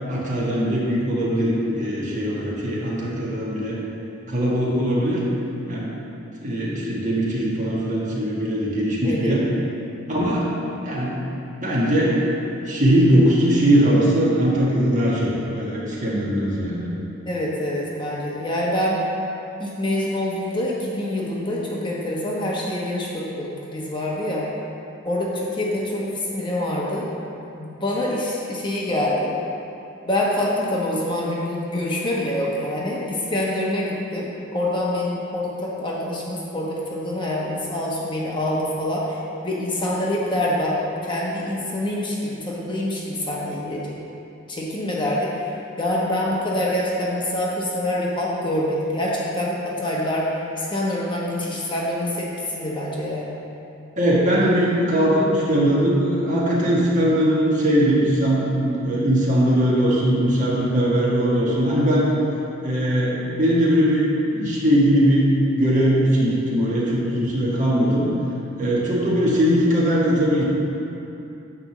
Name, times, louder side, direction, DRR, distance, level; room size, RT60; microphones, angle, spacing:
voice 1, 0.1-3.8 4.3-5.2 5.7-5.9 6.4-9.4 10.1-10.5 10.8-11.2 11.6-12.4 12.6-16.9 54.0-62.1 62.6-64.0 64.3-68.1 68.6-70.4, equal, 40° right, -6 dB, 1.7 m, -20 dB
voice 2, 9.0-9.4 17.3-19.0 19.6-24.4 25.0-27.1 27.5-29.3 30.1-34.3 34.5-40.7 41.0-43.9 44.5-45.5 45.8-50.3 50.6-52.3 52.5-53.3, left 1 dB, 25° left, -4 dB, 1.0 m, -25 dB
9.8 x 3.5 x 7.1 m, 2.8 s
head